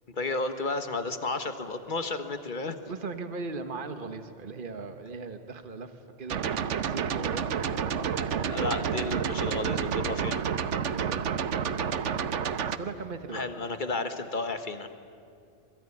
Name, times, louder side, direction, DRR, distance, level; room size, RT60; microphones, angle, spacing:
voice 1, 0.1-2.8 8.5-10.4 13.3-14.9, left 3 dB, 45° left, 9 dB, 1.7 m, -32 dB
voice 2, 2.9-8.7 10.9-11.8 12.3-12.5 12.8-13.7, right 4 dB, 45° right, 8 dB, 1.5 m, -39 dB
sound 1, 6.3-12.8, right 7 dB, 80° right, 1.2 m, -29 dB
Walk footsteps, 7.0-13.7, left 2 dB, 85° left, 7.3 m, -55 dB
26.5 x 21.5 x 10.0 m, 2.3 s
omnidirectional pair, 1.2 m